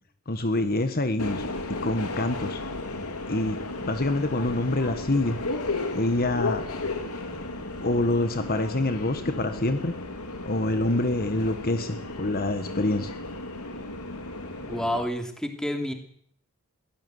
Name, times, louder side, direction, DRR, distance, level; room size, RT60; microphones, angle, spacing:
voice 1, 0.3-1.4 1.8-2.6 3.3-3.6 3.8-5.4 5.9-6.6 7.8-9.9 10.4-13.1, left 2 dB, 45° left, 8 dB, 1.5 m, -26 dB
Subway metro underground, 1.2-15.0, left 2 dB, 85° left, 3.3 m, -34 dB
voice 2, 14.7-15.9, equal, 5° left, 4 dB, 2.9 m, -29 dB
22.5 x 16.5 x 8.0 m, 0.63 s
head